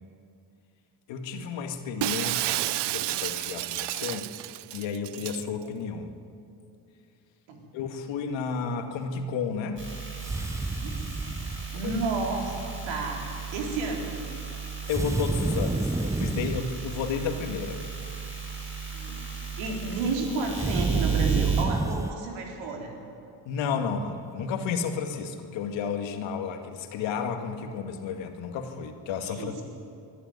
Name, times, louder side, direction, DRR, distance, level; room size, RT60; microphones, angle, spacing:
voice 1, 1.1-4.3 4.7-6.1 7.7-9.8 11.8-12.0 14.9-17.8 23.5-29.6, left 6 dB, 80° left, 6 dB, 2.1 m, -32 dB
Shatter, 2.0-5.4, right 17 dB, 65° right, 0.6 m, -30 dB
sound 1, 9.8-21.6, right 6 dB, 25° right, 5.0 m, -34 dB
sound 2, 10.2-11.7 14.9-16.7 20.5-22.2, right 2 dB, 5° right, 0.5 m, -29 dB
voice 2, 11.7-12.5 12.8-14.2 18.9-19.2 19.6-23.0 29.2-29.6, right 3 dB, 85° right, 1 dB, 4.1 m, -31 dB
23.0 x 12.5 x 9.6 m, 2.5 s
supercardioid pair, 85°, 45 cm